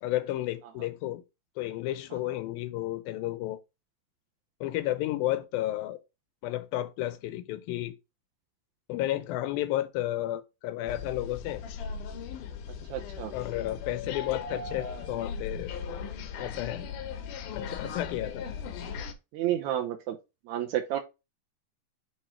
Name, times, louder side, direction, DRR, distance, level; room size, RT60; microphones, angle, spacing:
voice 1, 0.0-1.2 1.6-3.6 4.6-6.0 6.4-7.9 8.9-11.6 13.3-15.7 16.4-16.9 17.5-18.4 18.9-19.0, left 14 dB, 90° left, 2.4 m, -32 dB
sound 1, 10.9-19.1, left 6 dB, 75° left, 2.2 m, -38 dB
voice 2, 12.9-13.3 19.3-20.2 20.5-21.0, right 12 dB, 80° right, 1.7 m, -30 dB
6.2 x 3.8 x 4.3 m
omnidirectional pair, 4.1 m